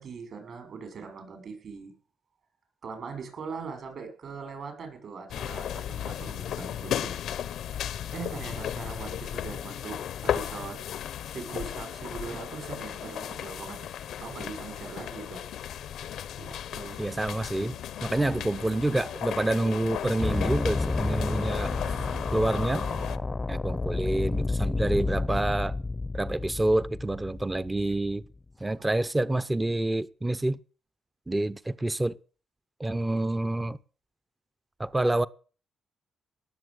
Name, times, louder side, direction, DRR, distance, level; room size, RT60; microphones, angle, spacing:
voice 1, 0.0-1.9 2.8-7.1 7.7-10.8 11.3-15.4 16.4-17.0 28.8-28.9, right 5 dB, 60° right, 6.2 m, -41 dB
sound 1, 5.3-23.2, left 10 dB, 75° left, 0.8 m, -35 dB
voice 2, 17.0-21.8 22.3-22.9 23.5-25.8 26.1-28.2 28.6-30.6 31.3-32.2 32.8-33.8 34.8-35.3, right 2 dB, 15° right, 0.7 m, -28 dB
sound 2, 20.2-28.2, left 3 dB, 20° left, 0.7 m, -30 dB
18.5 x 7.3 x 8.0 m
cardioid pair, 90°, 0 cm